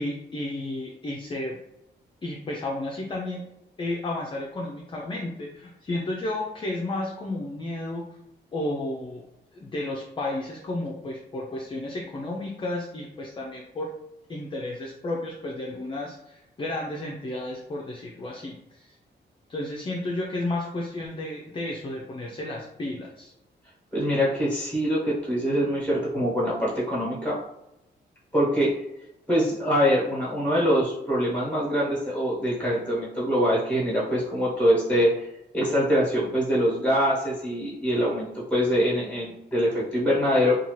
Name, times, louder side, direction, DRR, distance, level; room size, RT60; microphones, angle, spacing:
voice 1, 0.0-1.6 2.2-3.4 3.8-8.0 8.5-9.2 9.5-13.9 14.3-18.9 19.5-23.3, left 2 dB, 25° left, -1 dB, 0.4 m, -32 dB
voice 2, 23.9-27.4 28.3-28.7 29.3-35.1 35.5-40.6, equal, 10° left, -8 dB, 1.1 m, -24 dB
2.7 x 2.3 x 3.0 m, 0.84 s
wide cardioid pair, 130°, 19 cm